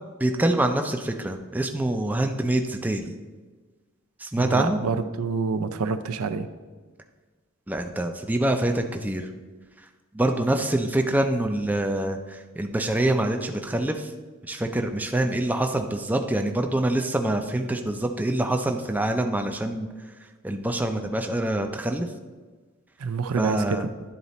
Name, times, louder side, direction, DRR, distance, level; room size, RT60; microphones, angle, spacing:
voice 1, 0.2-3.1 4.2-4.8 7.7-9.3 10.1-14.1 14.5-19.9 20.4-22.1 23.4-23.9, right 1 dB, 10° right, 5 dB, 0.4 m, -25 dB
voice 2, 4.4-6.5 23.0-23.8, right 4 dB, 80° right, 10 dB, 0.5 m, -27 dB
10.0 x 4.0 x 4.1 m, 1.3 s
head